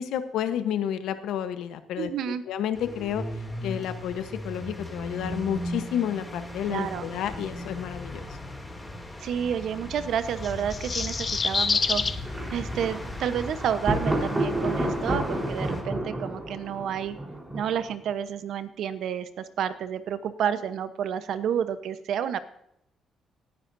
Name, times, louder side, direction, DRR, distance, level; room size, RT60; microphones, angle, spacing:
voice 1, 0.0-3.2 3.6-8.3, left 9 dB, 85° left, 10 dB, 1.0 m, -30 dB
voice 2, 2.0-2.4 6.7-7.0 9.2-12.0 12.5-17.2 17.5-22.4, right 8 dB, 75° right, 12 dB, 0.9 m, -30 dB
sound 1, 2.7-15.8, left 1 dB, 10° left, 2.7 m, -38 dB
sound 2, 10.4-12.2, left 5 dB, 40° left, 0.7 m, -26 dB
Thunder, 12.3-18.1, right 1 dB, 15° right, 4.1 m, -30 dB
18.0 x 9.9 x 2.7 m, 0.77 s
cardioid pair, 90°, 0 cm